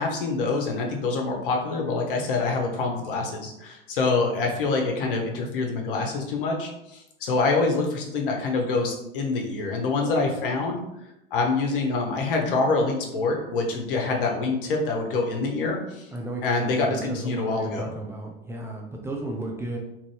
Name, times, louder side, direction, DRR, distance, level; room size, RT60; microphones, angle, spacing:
voice 1, 0.0-10.8 11.3-16.1 16.4-17.9, left 3 dB, 65° left, 1 dB, 0.9 m, -26 dB
voice 2, 16.1-19.8, right 2 dB, 10° right, -1 dB, 0.3 m, -34 dB
3.0 x 2.6 x 3.1 m, 0.85 s
figure-of-eight pair, 80°, 29 cm